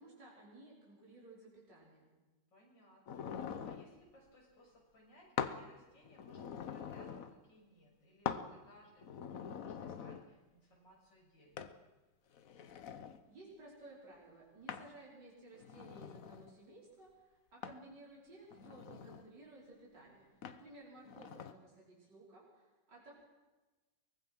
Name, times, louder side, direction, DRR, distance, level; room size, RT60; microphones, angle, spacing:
voice 1, 0.0-2.1 13.3-23.1, right 2 dB, 70° right, -6 dB, 5.6 m, -57 dB
voice 2, 2.5-11.8, equal, 90° left, -2 dB, 7.3 m, -64 dB
sound 1, 3.1-3.9 5.4-5.6 6.0-7.3 8.3-8.5 9.0-10.3 11.6-11.7 12.3-13.2 14.7-14.9 15.5-16.5 17.6-17.9 18.5-19.3 20.4-20.6 21.1-21.5, left 7 dB, 55° left, 1.3 m, -43 dB
24.0 x 19.5 x 6.1 m, 1.2 s
omnidirectional pair, 1.9 m